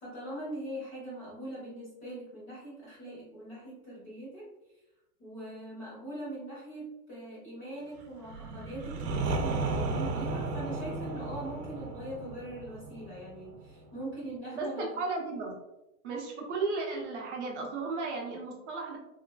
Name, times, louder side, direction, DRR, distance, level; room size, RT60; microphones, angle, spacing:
voice 1, 0.0-4.5 5.2-14.8, right 1 dB, 25° left, -7 dB, 0.5 m, -41 dB
sound 1, 8.3-14.0, right 3 dB, 85° right, 0.7 m, -34 dB
voice 2, 14.5-15.5 16.0-19.0, right 3 dB, 50° right, 0 dB, 0.6 m, -34 dB
3.1 x 2.3 x 2.3 m, 0.91 s
supercardioid pair, 175°, 47 cm